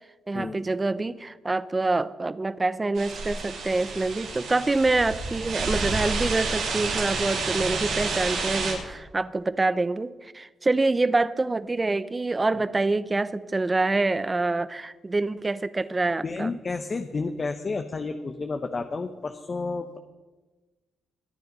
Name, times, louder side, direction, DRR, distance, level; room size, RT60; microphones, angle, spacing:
voice 1, 0.3-16.5, right 3 dB, 25° right, 16 dB, 0.8 m, -26 dB
sound 1, 2.9-8.7, right 4 dB, 80° right, 6.8 m, -29 dB
voice 2, 16.2-20.0, left 3 dB, 40° left, 7 dB, 1.1 m, -31 dB
22.0 x 9.4 x 5.4 m, 1.3 s
cardioid pair, 65°, 0 cm